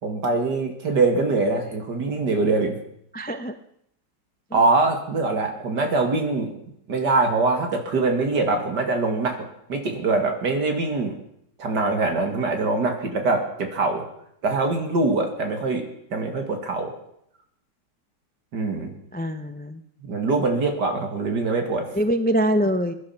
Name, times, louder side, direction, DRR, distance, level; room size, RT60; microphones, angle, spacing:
voice 1, 0.0-2.8 4.5-6.5 6.9-9.4 9.7-11.1 11.6-14.0 14.4-15.8 16.1-16.9 18.5-18.9 20.0-21.9, right 3 dB, 65° right, 5 dB, 2.8 m, -23 dB
voice 2, 3.1-3.6 19.1-19.8 21.9-22.9, equal, 15° left, 9 dB, 0.3 m, -23 dB
22.0 x 11.5 x 5.9 m, 0.73 s
omnidirectional pair, 1.9 m